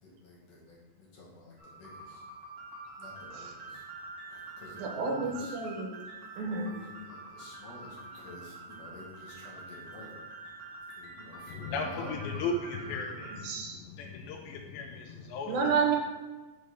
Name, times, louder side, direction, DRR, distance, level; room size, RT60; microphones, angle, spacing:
voice 1, 0.0-2.2 3.0-3.8 4.3-5.5 6.4-10.1 11.0-12.1, left 2 dB, 60° left, -4 dB, 1.9 m, -49 dB
sound 1, 1.6-13.4, right 3 dB, 65° right, 0.9 m, -46 dB
voice 2, 4.7-6.0 6.4-6.7 11.8-12.1 13.4-13.8 15.5-16.0, right 5 dB, 85° right, 1 dB, 2.7 m, -31 dB
voice 3, 11.5-15.6, left 3 dB, 85° left, 2 dB, 2.4 m, -36 dB
6.5 x 3.4 x 5.5 m, 1.2 s
omnidirectional pair, 4.2 m